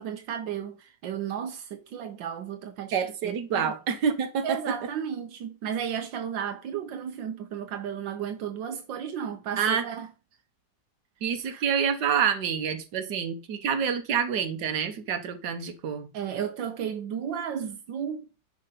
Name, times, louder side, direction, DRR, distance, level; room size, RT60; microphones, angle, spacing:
voice 1, 0.0-2.9 3.2-3.7 4.4-10.1 11.5-11.6 16.1-18.3, right 8 dB, 85° right, 1.6 m, -34 dB
voice 2, 2.9-4.7 9.6-9.8 11.2-16.1, right 7 dB, 70° right, 1.8 m, -27 dB
10.5 x 4.0 x 5.7 m
omnidirectional pair, 1.9 m